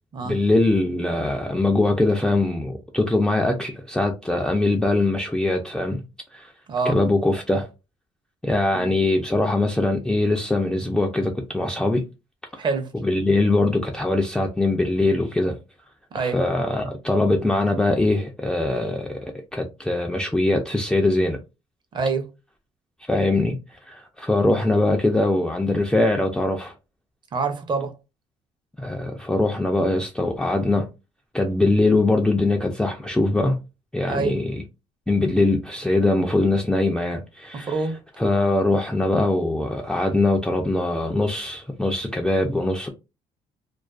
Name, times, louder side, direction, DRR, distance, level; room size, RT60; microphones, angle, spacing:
voice 1, 0.2-6.0 6.3-6.5 6.9-7.7 8.4-12.0 13.0-15.6 16.2-19.3 19.5-21.4 23.1-23.6 23.9-26.7 28.8-30.9 31.3-33.6 33.9-34.5 35.1-37.8 38.2-42.9, left 2 dB, 5° left, 0.3 m, -22 dB
voice 2, 12.6-12.9 16.1-16.4 21.9-22.3 27.3-27.9 34.1-34.4 37.5-38.0, right 4 dB, 35° right, 0.6 m, -26 dB
2.4 x 2.3 x 2.3 m
cardioid pair, 120°, 13 cm